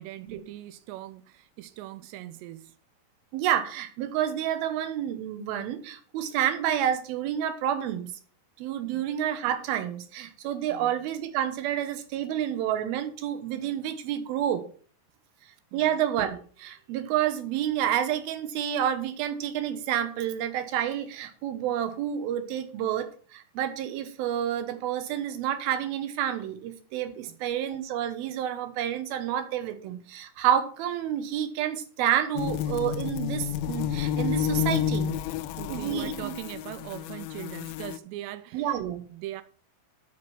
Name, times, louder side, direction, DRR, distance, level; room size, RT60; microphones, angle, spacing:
voice 1, 0.0-2.8 8.9-9.0 10.7-11.0 15.7-16.0 27.3-27.4 35.6-38.8 39.1-39.4, right 14 dB, 90° right, 2.8 m, -41 dB
voice 2, 3.3-8.1 8.6-14.7 15.7-35.1 35.7-36.3 38.5-39.0, right 10 dB, 70° right, 2.8 m, -29 dB
sound 1, 32.4-38.0, left 10 dB, 85° left, 2.2 m, -30 dB
12.5 x 5.2 x 6.0 m
omnidirectional pair, 4.9 m